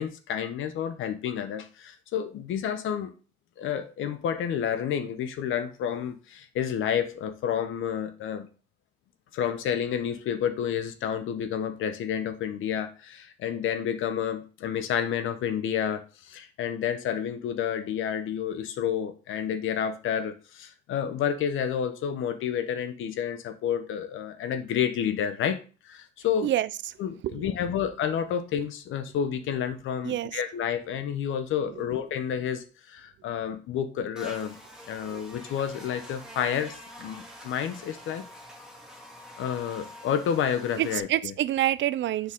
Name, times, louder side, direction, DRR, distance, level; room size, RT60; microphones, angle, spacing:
voice 1, 0.0-3.1 3.6-8.5 9.3-25.6 25.8-26.5 27.0-34.6 34.9-38.3 39.4-41.3, left 8 dB, 80° left, 1.1 m, -30 dB
voice 2, 30.0-30.4 35.1-35.2 40.8-42.3, right 13 dB, 70° right, 0.5 m, -27 dB
Buzz, 34.2-41.0, equal, 5° right, 2.4 m, -46 dB
7.1 x 6.0 x 3.7 m
cardioid pair, 90°, 20 cm